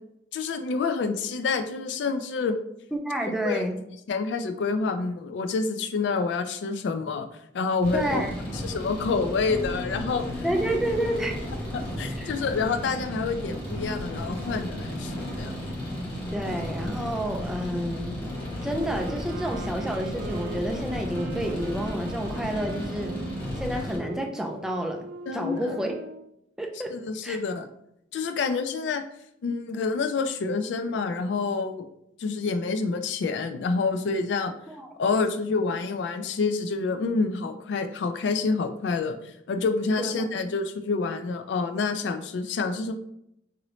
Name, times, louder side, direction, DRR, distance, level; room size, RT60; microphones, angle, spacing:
voice 1, 0.3-2.6 3.3-3.6 4.1-7.3 7.5-8.2 8.6-10.4 11.7-15.5 25.3-25.8 26.9-27.7 28.1-29.0 29.4-31.9 32.2-34.5 35.0-39.2 39.5-42.9, left 4 dB, 85° left, 8 dB, 0.3 m, -28 dB
voice 2, 2.9-3.8 7.9-8.3 10.4-11.4 12.1-12.3 16.3-18.2 18.6-23.2 23.6-25.1 25.3-25.9 26.6-26.9 27.2-27.4 34.7-34.9 40.0-40.3, right 1 dB, 5° right, 2 dB, 0.4 m, -29 dB
sound 1, 7.8-24.0, left 1 dB, 30° left, 1.1 m, -34 dB
sound 2, 18.8-26.3, right 5 dB, 80° right, 0.3 m, -41 dB
2.9 x 2.6 x 3.0 m, 0.78 s
head